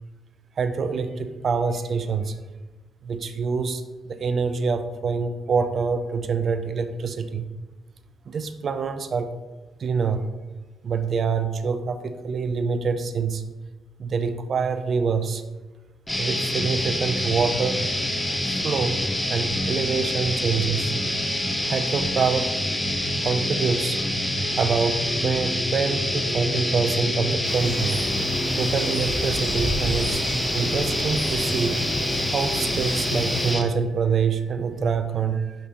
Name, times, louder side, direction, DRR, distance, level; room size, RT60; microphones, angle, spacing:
voice 1, 0.6-2.3 3.0-7.5 8.3-9.3 9.8-10.3 10.8-13.4 14.0-15.4 16.2-17.8 18.6-19.0 19.3-20.9 21.6-22.5 23.2-24.0 24.6-28.0 28.6-30.2 30.5-31.8 32.3-35.6, right 5 dB, 55° right, 10 dB, 0.5 m, -25 dB
sound 1, 16.1-33.6, left 1 dB, 10° left, 0.8 m, -26 dB
sound 2, 27.4-33.5, right 1 dB, 70° right, 1.6 m, -33 dB
6.0 x 5.8 x 2.9 m, 1.2 s
hypercardioid pair, 45°, 0 cm